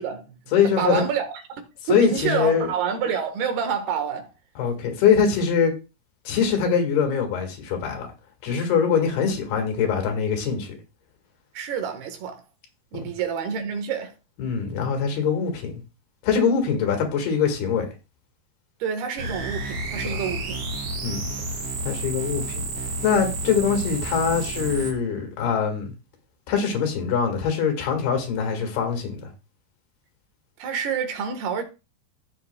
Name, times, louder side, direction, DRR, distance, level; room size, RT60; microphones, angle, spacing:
voice 1, 0.0-0.4 0.8-1.6 1.9-4.3 11.5-12.4 12.9-14.1 18.8-20.6 30.6-31.6, right 7 dB, 80° right, 3.3 m, -28 dB
voice 2, 0.5-1.0 1.9-2.7 4.6-5.7 6.3-8.1 8.4-10.8 14.4-15.8 16.2-17.9 20.0-20.2 21.0-21.3 21.8-22.5 23.0-25.9 26.5-29.3, left 6 dB, 80° left, 3.8 m, -23 dB
sound 1, 19.2-24.9, right 2 dB, 50° right, 3.0 m, -30 dB
16.5 x 6.8 x 2.2 m
omnidirectional pair, 4.5 m